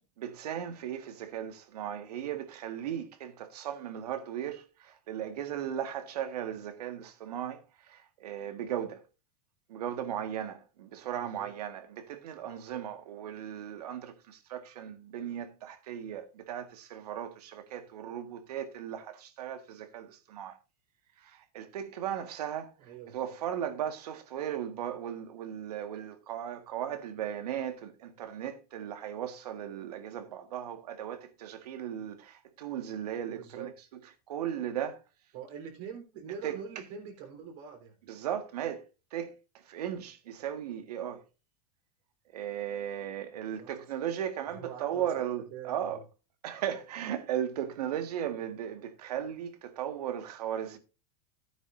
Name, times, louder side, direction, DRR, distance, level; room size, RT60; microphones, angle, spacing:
voice 1, 0.2-9.0 9.7-20.6 21.2-22.7 23.1-33.7 34.3-35.0 36.4-36.6 38.1-38.8 39.1-39.3 39.6-41.2 42.3-46.0 46.4-50.8, right 10 dB, 85° right, 1.7 m, -37 dB
voice 2, 11.2-11.5 12.4-12.8 22.8-23.3 33.4-33.7 35.3-38.0 43.6-43.7 44.5-45.2 45.5-46.0, right 7 dB, 60° right, 3.8 m, -44 dB
13.0 x 9.3 x 2.6 m
supercardioid pair, 140°, 20 cm